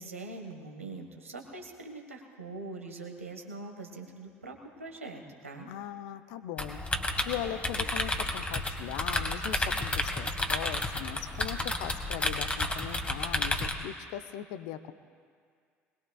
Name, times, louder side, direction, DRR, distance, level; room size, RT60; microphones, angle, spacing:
voice 1, 0.0-5.7, right 3 dB, 90° right, 2 dB, 1.5 m, -43 dB
voice 2, 5.7-6.8 7.2-14.9, left 11 dB, 60° left, 10 dB, 0.7 m, -39 dB
sound 1, 6.6-13.7, left 2 dB, 15° left, 1.7 m, -31 dB
21.5 x 20.5 x 2.4 m, 2.1 s
figure-of-eight pair, 60°, 7 cm